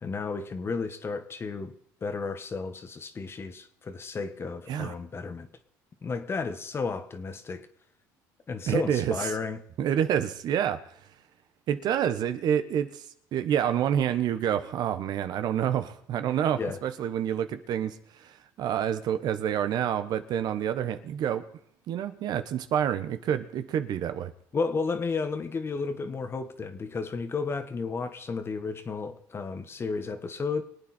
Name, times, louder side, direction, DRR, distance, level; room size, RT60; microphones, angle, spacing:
voice 1, 0.0-1.7 2.0-5.5 6.0-7.6 8.5-9.6 16.6-16.8 24.5-30.6, left 4 dB, 30° left, 1.5 m, -32 dB
voice 2, 8.7-9.3 9.8-10.8 11.7-13.0 13.3-18.3 18.6-21.4 21.9-24.3, right 9 dB, 60° right, 1.1 m, -28 dB
24.0 x 8.8 x 4.4 m
supercardioid pair, 95°, 8 cm